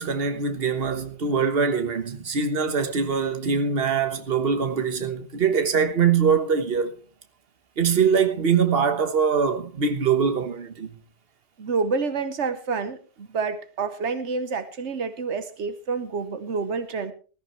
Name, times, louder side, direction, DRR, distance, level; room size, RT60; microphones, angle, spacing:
voice 1, 0.0-6.9 7.8-10.9, right 6 dB, 60° right, 1.5 m, -23 dB
voice 2, 11.6-17.1, right 4 dB, 85° right, 1.4 m, -28 dB
19.5 x 13.5 x 3.2 m
omnidirectional pair, 1.1 m